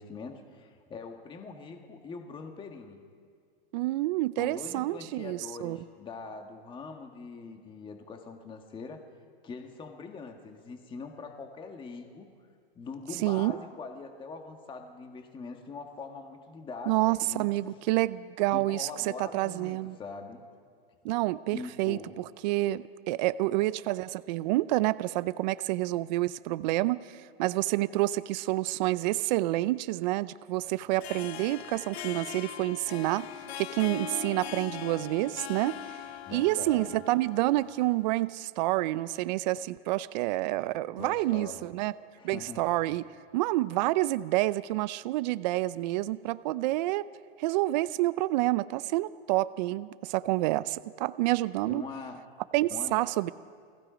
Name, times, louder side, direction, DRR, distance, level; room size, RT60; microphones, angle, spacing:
voice 1, 0.0-3.0 4.4-9.0 9.4-12.3 12.7-17.5 18.5-20.4 21.5-22.1 36.2-37.0 41.0-41.7 42.2-43.0 51.6-52.2 52.7-53.0, left 4 dB, 15° left, 4 dB, 1.6 m, -43 dB
voice 2, 3.7-5.8 13.2-13.5 16.9-20.0 21.0-33.3 33.6-36.0 36.3-41.9 42.2-43.0 43.3-47.1 47.4-51.8 52.5-53.3, right 18 dB, 45° right, 17 dB, 0.5 m, -28 dB
Harp, 30.8-38.2, left 10 dB, 80° left, 0.9 m, -41 dB
29.5 x 18.5 x 5.1 m, 2.1 s
supercardioid pair, 145°, 31 cm